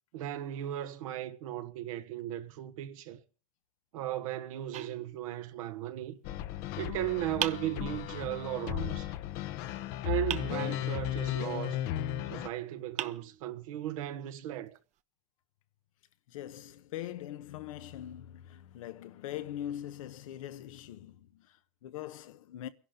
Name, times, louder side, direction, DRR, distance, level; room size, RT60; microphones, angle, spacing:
voice 1, 0.1-3.2 3.9-6.2 6.8-9.1 10.0-11.8 12.2-14.8, right 13 dB, 80° right, 1.4 m, -36 dB
sound 1, 4.7-5.7 7.4-8.4 10.3-11.2 12.4-12.5 13.0-13.9, right 11 dB, 45° right, 0.9 m, -40 dB
sound 2, 6.2-12.5, left 12 dB, 60° left, 1.0 m, -35 dB
voice 2, 16.3-22.7, left 12 dB, 85° left, 1.2 m, -42 dB
29.0 x 11.0 x 3.8 m
supercardioid pair, 115°, 17 cm